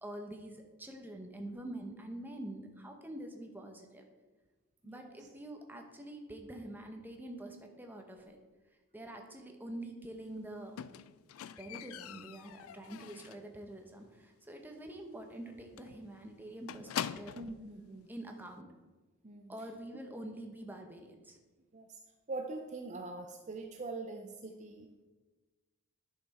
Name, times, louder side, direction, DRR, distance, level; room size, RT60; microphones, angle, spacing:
voice 1, 0.0-4.0 4.8-8.4 8.9-10.8 11.6-17.4 18.1-18.7 19.5-21.4, right 1 dB, 10° right, 3 dB, 0.9 m, -46 dB
voice 2, 4.8-5.3 17.3-18.1 19.2-19.7 21.7-22.0 22.3-25.0, right 3 dB, 35° right, 4 dB, 0.5 m, -43 dB
Squeak, 10.8-13.5 13.9-14.3 14.6-14.7 15.0-15.1 15.4-15.5 15.8-17.6 18.5-18.6, left 9 dB, 70° left, 0.3 m, -43 dB
10.5 x 5.8 x 4.2 m, 1.3 s
head